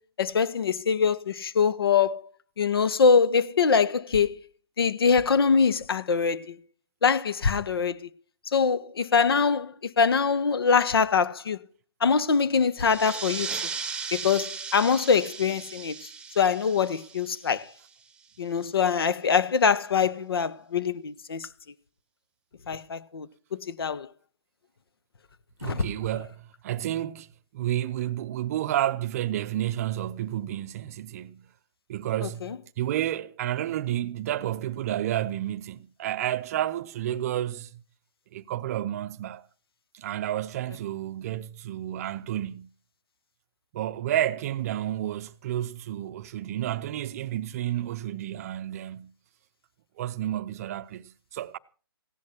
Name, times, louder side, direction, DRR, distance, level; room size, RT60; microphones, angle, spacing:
voice 1, 0.2-2.2 2.6-4.3 4.8-6.5 7.0-8.1 8.5-11.6 12.0-13.5 14.1-15.9 16.4-17.6 18.4-21.5 22.7-23.3 23.5-24.1 25.6-25.8, left 6 dB, 65° left, 1.3 m, -23 dB
sound 1, 12.8-18.0, right 5 dB, 5° right, 1.3 m, -37 dB
voice 2, 25.6-27.3 27.5-31.5 31.9-37.8 38.3-39.4 39.9-42.7 43.7-49.1 50.0-51.6, right 12 dB, 35° right, 0.6 m, -31 dB
16.0 x 10.5 x 5.9 m
figure-of-eight pair, 140°, 14 cm